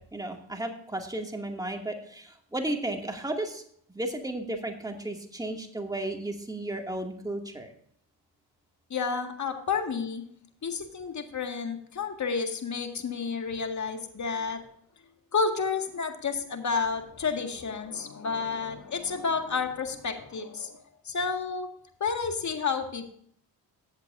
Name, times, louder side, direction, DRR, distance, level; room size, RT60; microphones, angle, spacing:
voice 1, 0.1-3.6 3.9-7.7, right 1 dB, 10° right, 2 dB, 2.2 m, -34 dB
voice 2, 8.9-10.2 10.6-14.6 15.3-20.8 21.1-21.7 22.0-23.1, left 5 dB, 40° left, 6 dB, 1.9 m, -30 dB
14.5 x 8.0 x 2.6 m, 0.62 s
supercardioid pair, 70°, 42 cm